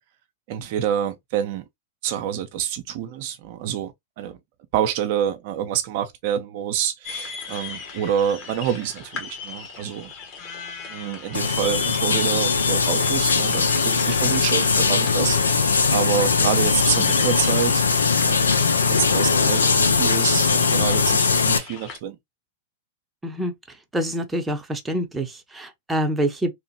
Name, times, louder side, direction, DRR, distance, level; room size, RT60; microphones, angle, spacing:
voice 1, 0.5-1.6 2.0-4.4 4.7-10.1 10.9-17.8 18.2-18.6 18.9-22.2, right 9 dB, 55° right, 0.4 m, -27 dB
sound 1, 7.0-22.0, left 6 dB, 40° left, 1.3 m, -36 dB
sound 2, 11.3-21.6, left 5 dB, 90° left, 0.4 m, -20 dB
voice 2, 23.2-23.5 23.9-26.5, right 1 dB, 10° right, 0.6 m, -26 dB
2.9 x 2.1 x 2.8 m
hypercardioid pair, 105°, 0 cm